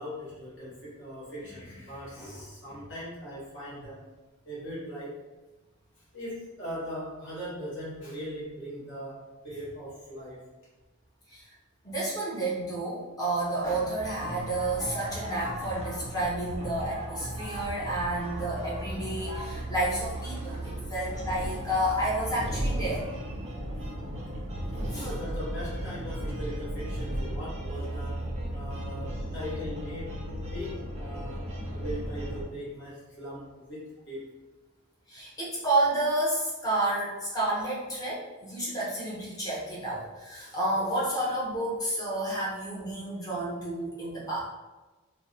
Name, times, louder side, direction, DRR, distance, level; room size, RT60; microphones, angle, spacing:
voice 1, 0.0-4.0 4.4-5.2 6.1-10.4 13.6-13.9 20.9-21.0 24.5-24.6 24.9-30.1 30.5-34.2, equal, 55° left, -9 dB, 1.2 m, -40 dB
voice 2, 11.8-23.1 24.9-25.1 35.1-44.4, right 1 dB, 15° left, -6 dB, 0.6 m, -30 dB
sound 1, 14.0-32.4, right 1 dB, 30° right, 0.4 m, -35 dB
2.6 x 2.0 x 2.6 m, 1.2 s
head